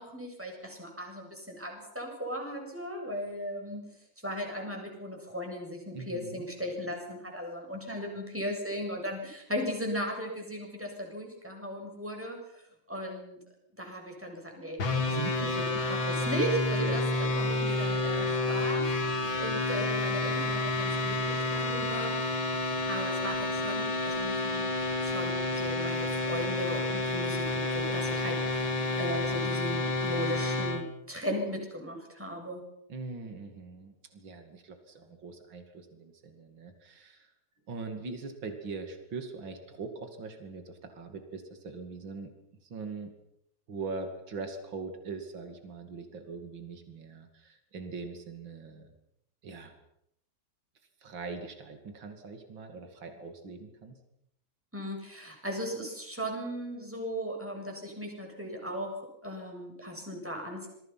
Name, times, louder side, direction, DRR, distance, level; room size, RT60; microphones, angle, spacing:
voice 1, 0.0-3.8 4.2-12.6 12.9-13.4 13.8-14.8 15.0-15.6 15.9-18.8 19.4-22.2 22.9-24.7 25.0-32.6 54.7-58.9 59.2-60.7, equal, 5° right, 1 dB, 7.5 m, -37 dB
voice 2, 5.9-6.4 15.1-15.7 16.8-17.0 32.9-37.3 37.7-42.3 42.7-43.1 43.7-48.9 49.4-49.7 51.0-54.0, right 4 dB, 75° right, 6 dB, 3.3 m, -41 dB
sound 1, 14.8-30.8, left 2 dB, 80° left, 3.2 m, -30 dB
28.0 x 22.5 x 5.9 m, 0.78 s
omnidirectional pair, 2.1 m